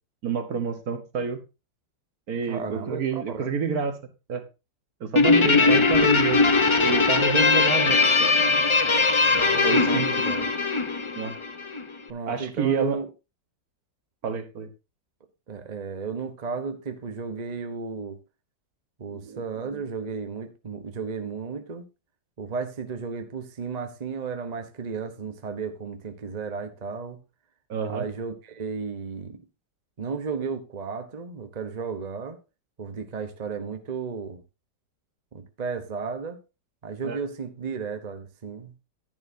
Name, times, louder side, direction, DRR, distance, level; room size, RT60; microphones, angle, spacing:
voice 1, 0.2-1.4 2.3-3.9 4.3-4.4 5.0-6.5 6.8-8.3 9.6-10.2 11.2-11.3 12.3-13.0 14.2-14.7 19.1-19.4 19.7-19.8 27.7-28.1 37.0-37.2, right 6 dB, 60° right, 1.7 m, -28 dB
voice 2, 2.5-3.5 5.5-5.9 9.2-10.5 12.1-13.1 15.5-18.2 19.0-21.8 22.4-27.2 27.9-29.4 30.0-32.4 32.8-34.4 35.3-36.4 36.8-38.7, right 5 dB, 30° right, 0.9 m, -34 dB
Guitar, 5.2-11.8, left 4 dB, 50° left, 0.3 m, -20 dB
10.5 x 10.5 x 2.7 m
omnidirectional pair, 1.9 m